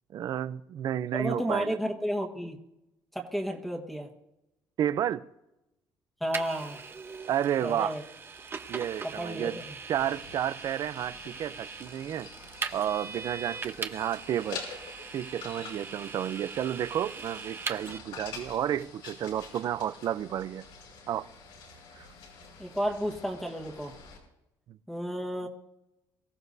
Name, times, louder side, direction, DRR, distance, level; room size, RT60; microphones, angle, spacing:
voice 1, 0.1-1.8 4.8-5.3 7.3-8.0 8.7-9.6 9.9-12.3 12.7-14.6 15.1-20.6 21.1-21.3 22.0-22.1 24.7-24.8, right 10 dB, 50° right, 0.5 m, -31 dB
voice 2, 1.1-2.6 3.1-4.1 6.2-6.8 7.6-8.0 9.0-9.6 22.6-23.9 24.9-25.5, equal, ahead, 1.5 m, -32 dB
Vehicle, 6.3-18.0, right 5 dB, 30° right, 1.0 m, -41 dB
sound 1, 10.0-24.2, left 5 dB, 85° left, 5.3 m, -47 dB
23.5 x 15.0 x 2.7 m
cardioid pair, 125°, 8 cm